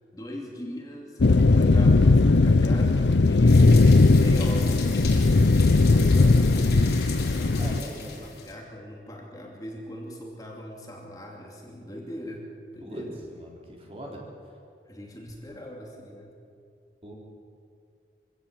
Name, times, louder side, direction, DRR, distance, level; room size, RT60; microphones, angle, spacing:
voice 1, 0.1-5.5 5.8-13.2 14.9-16.4, equal, 20° left, -1 dB, 2.7 m, -40 dB
sound 1, 1.2-7.8, left 3 dB, 85° left, 0.6 m, -18 dB
sound 2, 3.5-8.5, left 3 dB, 70° left, 4.5 m, -37 dB
voice 2, 7.5-8.3 12.8-13.0 13.3-14.2 15.5-15.6 17.0-17.1, equal, 35° right, -2 dB, 4.0 m, -40 dB
25.0 x 16.5 x 7.6 m, 2.4 s
head